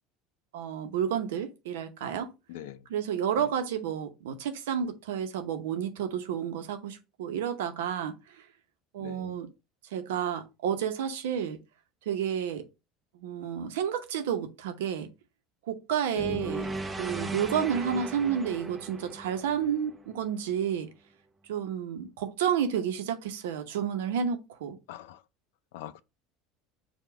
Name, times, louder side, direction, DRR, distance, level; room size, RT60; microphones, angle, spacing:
voice 1, 0.5-2.3 2.9-8.4 8.9-9.5 9.9-11.6 12.1-12.6 13.2-15.1 15.7-16.7 17.0-20.9 21.5-24.8, right 8 dB, 90° right, 0.8 m, -31 dB
voice 2, 2.5-2.8 9.0-9.4 16.2-16.4 24.9-25.2 25.7-26.0, left 12 dB, 80° left, 0.4 m, -42 dB
sound 1, 16.2-20.4, right 2 dB, 15° right, 0.6 m, -37 dB
4.9 x 2.3 x 4.5 m
supercardioid pair, 110°, 0 cm